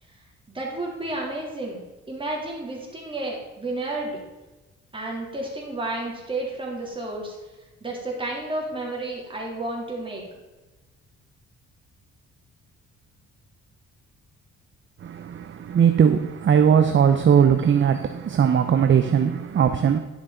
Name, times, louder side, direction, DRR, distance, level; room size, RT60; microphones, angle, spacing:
voice 1, 0.5-1.8 2.1-4.2 4.9-7.4 7.8-10.2, right 2 dB, 15° right, 3.5 m, -31 dB
voice 2, 15.0-20.0, right 7 dB, 40° right, 0.7 m, -19 dB
11.0 x 6.3 x 5.1 m
cardioid pair, 90°, 30 cm